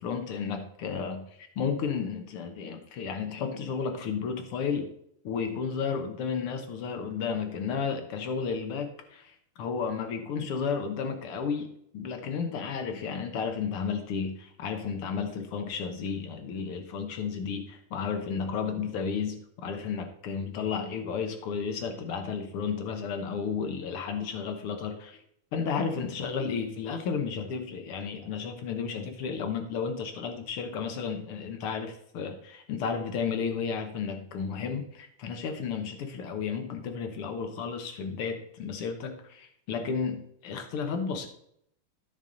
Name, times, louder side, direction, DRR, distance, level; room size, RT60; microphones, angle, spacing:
voice 1, 0.0-4.9 5.2-11.7 11.9-25.2 25.5-41.3, left 6 dB, 75° left, 6 dB, 1.3 m, -33 dB
13.5 x 5.3 x 3.9 m, 0.71 s
omnidirectional pair, 3.8 m